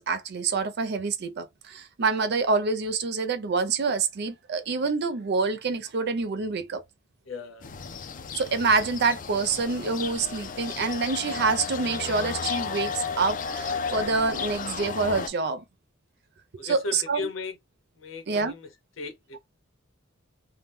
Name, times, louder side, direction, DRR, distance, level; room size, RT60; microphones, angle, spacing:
voice 1, 0.0-6.8 8.3-15.6 16.6-17.3 18.3-18.5, right 4 dB, 55° right, 0.5 m, -27 dB
voice 2, 7.3-7.7 16.6-17.6 18.0-18.7 19.0-19.4, left 3 dB, 80° left, 0.9 m, -36 dB
sound 1, 7.6-15.3, left 5 dB, 40° left, 0.4 m, -33 dB
2.8 x 2.1 x 3.4 m
head